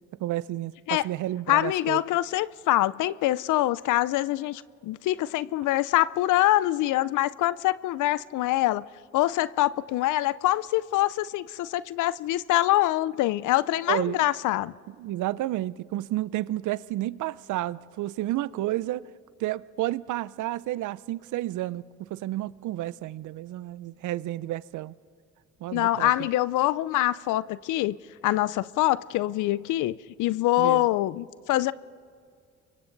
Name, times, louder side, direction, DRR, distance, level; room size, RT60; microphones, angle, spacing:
voice 1, 0.2-2.0 13.9-14.2 15.0-19.1 19.4-24.9 25.6-26.3 30.6-30.9, right 15 dB, 75° right, 0.6 m, -31 dB
voice 2, 1.5-8.9 9.1-14.7 25.7-28.0 28.2-31.7, left 15 dB, 85° left, 0.5 m, -25 dB
28.5 x 24.0 x 4.0 m
cardioid pair, 90°, 30 cm